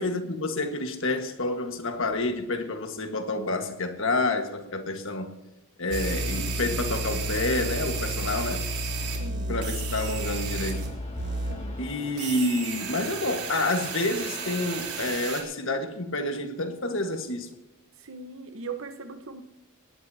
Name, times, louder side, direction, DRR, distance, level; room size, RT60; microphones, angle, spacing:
voice 1, 0.0-5.3 5.8-8.7 9.5-11.0 11.8-17.5, left 2 dB, 60° left, 1.6 m, -29 dB
sound 1, 5.9-10.9 11.2-11.5 12.2-15.4, right 2 dB, 80° right, 3.8 m, -31 dB
voice 2, 9.1-9.6 11.5-11.8 18.0-19.4, right 4 dB, 60° right, 1.2 m, -39 dB
sound 2, 10.5-15.3, left 2 dB, 30° left, 2.3 m, -44 dB
19.0 x 18.5 x 2.9 m
head